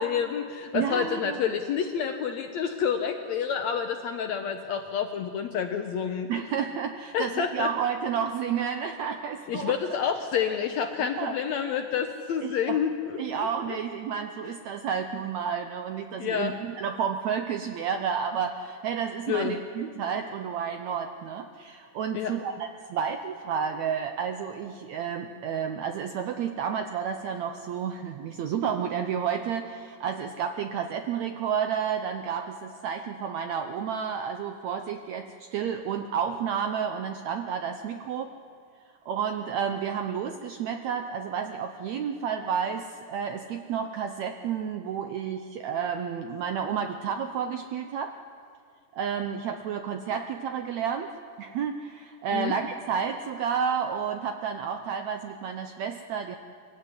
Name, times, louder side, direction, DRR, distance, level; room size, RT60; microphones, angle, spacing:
voice 1, 0.0-6.3 7.1-7.7 9.5-13.8 14.4-14.5 16.2-16.6 19.3-19.6 22.1-22.3 52.3-52.5, left 7 dB, 70° left, 6 dB, 1.7 m, -29 dB
voice 2, 0.7-1.4 6.3-10.0 11.2-11.4 12.4-12.8 13.2-38.3 39.1-48.1 48.9-51.1 51.4-56.4, right 7 dB, 75° right, 6 dB, 1.6 m, -31 dB
24.0 x 16.0 x 9.5 m, 2.3 s
omnidirectional pair, 4.1 m